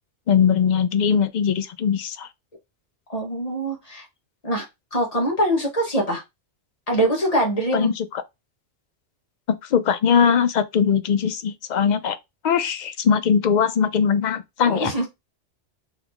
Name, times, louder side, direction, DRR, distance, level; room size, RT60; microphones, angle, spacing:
voice 1, 0.3-2.3 7.7-8.1 9.7-12.2 12.4-14.9, left 7 dB, 60° left, 0.4 m, -20 dB
voice 2, 3.1-4.1 4.4-4.7 4.9-6.2 6.9-7.9 14.6-15.1, right 1 dB, 30° left, 1.5 m, -23 dB
3.7 x 3.0 x 3.5 m
omnidirectional pair, 1.2 m